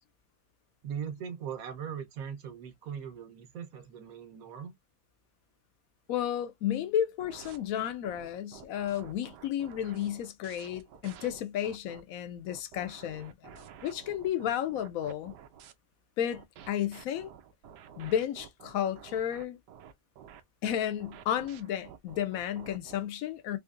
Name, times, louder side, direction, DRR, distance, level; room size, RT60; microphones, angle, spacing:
voice 1, 0.8-4.7, right 8 dB, 65° right, 1.3 m, -40 dB
voice 2, 6.1-15.3 16.2-17.3 18.0-19.6 20.6-23.6, left 10 dB, 70° left, 0.9 m, -32 dB
sound 1, 7.2-12.0 12.5-15.7 16.3-23.0, right 8 dB, 85° right, 1.3 m, -51 dB
3.7 x 3.2 x 2.5 m
omnidirectional pair, 1.8 m